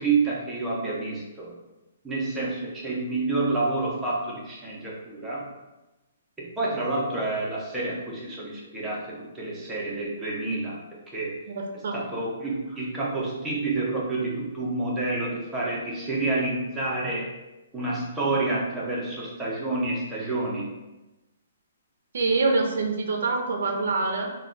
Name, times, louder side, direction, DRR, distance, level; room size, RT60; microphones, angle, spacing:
voice 1, 0.0-1.5 2.0-5.5 6.4-10.8 11.1-11.3 11.9-17.3 17.7-20.7, right 3 dB, 5° right, -6 dB, 0.5 m, -28 dB
voice 2, 11.5-12.0 22.1-24.3, right 3 dB, 60° right, 3 dB, 0.4 m, -25 dB
2.2 x 2.1 x 3.7 m, 1.0 s
hypercardioid pair, 165°, 0 cm